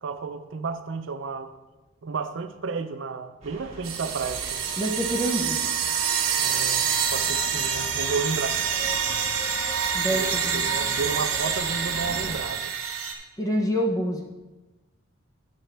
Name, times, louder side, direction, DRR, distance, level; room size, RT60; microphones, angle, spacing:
voice 1, 0.0-1.5 2.0-4.7 6.4-6.8 7.1-8.6 10.1-12.7, right 4 dB, 65° right, 9 dB, 0.5 m, -32 dB
sound 1, 3.4-12.4, right 1 dB, 30° right, 1.9 m, -41 dB
sound 2, 3.8-13.1, right 7 dB, 90° right, 0.9 m, -27 dB
voice 2, 4.8-5.6 9.9-10.7 13.4-14.2, equal, 15° left, 0 dB, 0.6 m, -26 dB
9.4 x 6.2 x 3.3 m, 1.2 s
head